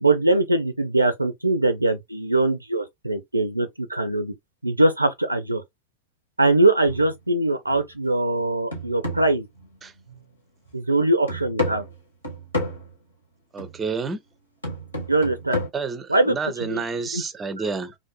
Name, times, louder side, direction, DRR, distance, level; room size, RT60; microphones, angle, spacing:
voice 1, 0.0-4.3 4.6-5.6 6.4-9.5 10.7-11.8 15.1-15.6 16.1-16.8 17.1-17.2, right 2 dB, 85° right, 0.4 m, -22 dB
sound 1, 6.9-7.2 7.7-7.8 8.3-10.3 10.7-10.8 11.3-12.9 13.6-13.8 14.6-15.7, left 1 dB, 80° left, 1.4 m, -31 dB
voice 2, 13.5-14.2 15.7-17.9, right 4 dB, 20° right, 0.5 m, -29 dB
3.7 x 2.5 x 2.2 m
figure-of-eight pair, 90°, 0 cm